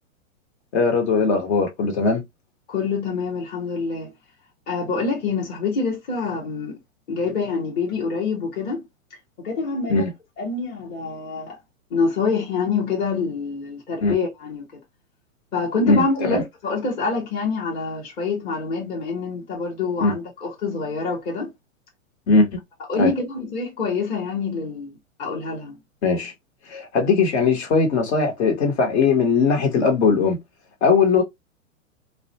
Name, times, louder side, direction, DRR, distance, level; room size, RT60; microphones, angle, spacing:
voice 1, 0.7-2.2 9.9-10.1 14.0-14.1 15.9-16.4 20.0-20.1 22.3-22.5 22.9-23.1 26.0-26.3 26.7-30.4 30.8-31.2, left 4 dB, 50° left, 1.0 m, -19 dB
voice 2, 2.7-4.1 4.7-6.8 7.1-8.8 9.4-10.1 10.4-11.6 11.9-14.8 15.5-21.5 22.9-25.8, left 4 dB, 25° left, 0.8 m, -26 dB
2.3 x 2.1 x 2.8 m
hypercardioid pair, 140°, 41 cm